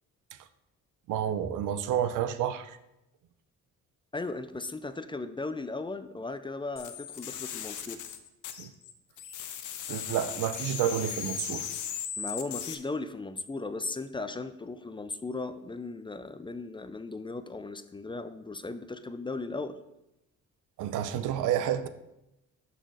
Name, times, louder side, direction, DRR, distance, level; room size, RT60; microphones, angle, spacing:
voice 1, 1.1-2.8 8.6-8.7 9.9-11.7 20.8-21.9, right 10 dB, 85° right, 12 dB, 0.6 m, -30 dB
voice 2, 4.1-8.0 12.2-19.8, left 3 dB, 15° left, 11 dB, 0.4 m, -37 dB
sound 1, 6.8-8.9 9.2-12.8, left 8 dB, 80° left, 0.8 m, -37 dB
12.0 x 4.1 x 4.0 m, 0.90 s
cardioid pair, 90°, 30 cm